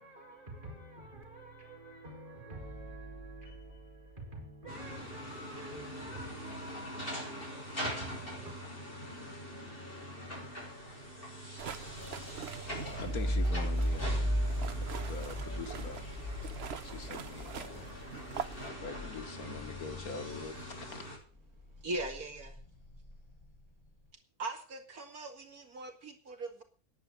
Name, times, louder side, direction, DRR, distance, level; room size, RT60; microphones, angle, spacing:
voice 1, 0.0-8.5, right 1 dB, 35° right, 5.4 m, -48 dB
sound 1, 4.7-21.2, equal, 35° left, 7.4 m, -43 dB
sound 2, 11.6-18.7, right 7 dB, 50° right, 0.9 m, -44 dB
voice 2, 12.7-14.4 15.1-16.1 16.8-18.1 18.7-21.1, left 5 dB, 90° left, 2.0 m, -44 dB
sound 3, 12.7-20.9 21.3-23.9, equal, 20° left, 6.5 m, -36 dB
voice 3, 21.8-22.6 24.4-26.6, right 2 dB, 85° right, 2.8 m, -40 dB
10.5 x 8.0 x 9.7 m
omnidirectional pair, 1.5 m